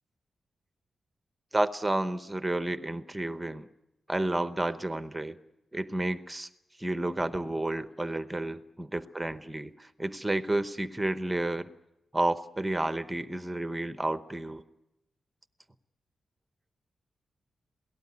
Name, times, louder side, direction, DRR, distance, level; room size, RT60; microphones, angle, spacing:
voice 1, 1.5-3.7 4.1-5.4 5.7-6.5 6.8-11.7 12.1-14.6, right 1 dB, 10° right, 11 dB, 0.9 m, -31 dB
27.5 x 18.5 x 9.7 m, 0.91 s
wide cardioid pair, 175°, 0 cm